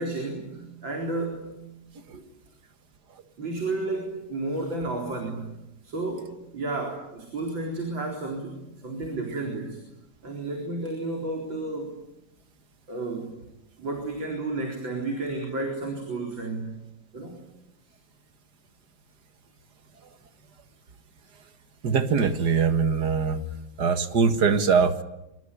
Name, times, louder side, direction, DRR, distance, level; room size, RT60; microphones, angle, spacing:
voice 1, 0.0-1.6 2.1-2.2 3.4-9.8 10.2-12.0 12.9-13.3 13.8-16.8 17.1-17.4, right 2 dB, 75° right, 2 dB, 5.0 m, -32 dB
voice 2, 21.8-23.4 23.8-25.0, right 5 dB, 60° right, 9 dB, 2.2 m, -22 dB
25.0 x 23.5 x 10.0 m, 0.91 s
omnidirectional pair, 2.1 m